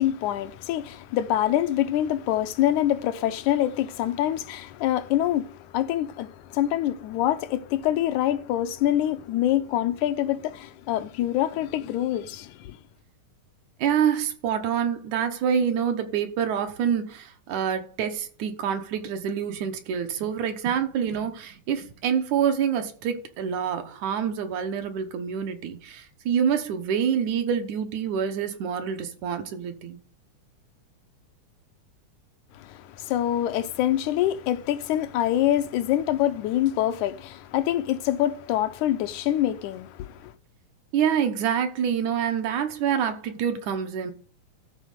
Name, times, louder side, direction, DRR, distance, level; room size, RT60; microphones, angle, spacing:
voice 1, 0.0-12.8 32.6-40.3, left 12 dB, 80° left, 2.0 m, -25 dB
voice 2, 13.8-30.0 40.9-44.1, right 8 dB, 75° right, 2.4 m, -26 dB
13.0 x 4.4 x 6.6 m
omnidirectional pair, 3.6 m